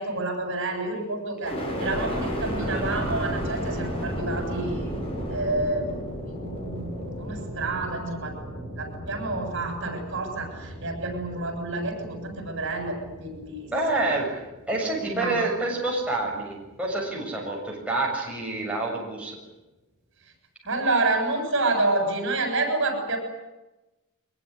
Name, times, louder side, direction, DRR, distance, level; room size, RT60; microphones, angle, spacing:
voice 1, 0.0-4.9 5.3-6.0 6.4-6.9 7.2-8.3 8.8-14.2 15.0-15.4 20.7-23.2, right 2 dB, 60° right, 5 dB, 7.8 m, -29 dB
sound 1, 1.4-15.4 15.9-16.7, equal, 25° left, 7.1 m, -34 dB
voice 2, 13.7-19.4, right 2 dB, 5° right, -3 dB, 7.2 m, -28 dB
23.5 x 22.0 x 9.9 m, 1.0 s
head